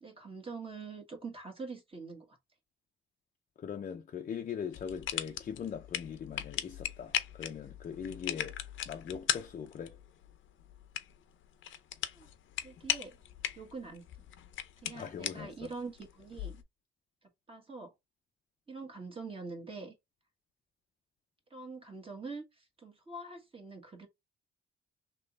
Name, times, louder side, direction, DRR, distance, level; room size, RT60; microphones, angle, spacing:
voice 1, 0.0-2.4 12.1-12.3 12.6-13.2 13.6-14.0 14.8-16.6 17.5-17.9 18.7-19.9 21.5-24.1, right 4 dB, 30° right, 1.5 m, -44 dB
voice 2, 3.6-8.6 8.9-10.0 14.9-15.7, left 7 dB, 40° left, 0.6 m, -41 dB
sound 1, 4.7-16.6, left 11 dB, 75° left, 0.7 m, -39 dB
3.3 x 3.0 x 3.9 m
cardioid pair, 90°, 20 cm